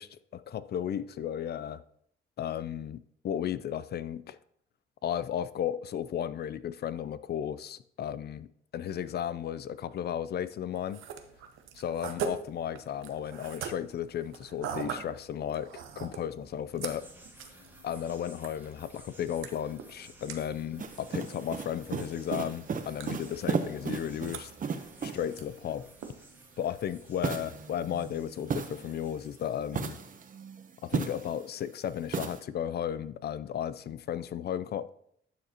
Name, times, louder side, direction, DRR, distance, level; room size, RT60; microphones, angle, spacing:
voice 1, 0.0-1.8 2.4-4.4 5.0-8.5 8.7-11.0 11.7-17.1 17.8-25.8 26.6-30.0 30.8-34.9, left 9 dB, 55° left, 0.5 m, -34 dB
sound 1, 10.7-27.3, right 7 dB, 85° right, 0.9 m, -44 dB
sound 2, 16.9-30.1, right 1 dB, 10° right, 1.4 m, -56 dB
sound 3, 20.8-25.4 27.2-29.2 29.7-31.5 32.1-32.4, right 5 dB, 40° right, 0.8 m, -35 dB
11.5 x 6.6 x 2.9 m
cardioid pair, 90°, 20 cm